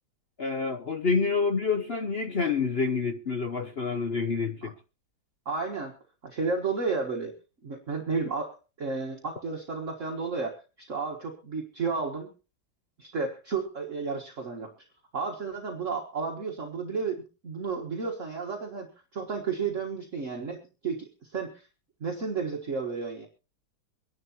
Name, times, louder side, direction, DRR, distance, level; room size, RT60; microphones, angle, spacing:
voice 1, 0.4-4.7, left 4 dB, 60° left, 0.6 m, -28 dB
voice 2, 5.5-6.0 6.2-7.3 7.6-12.3 13.0-14.7 15.1-18.9 19.1-21.7 22.0-23.3, right 4 dB, 40° right, 1.6 m, -32 dB
24.0 x 11.0 x 2.9 m
omnidirectional pair, 2.1 m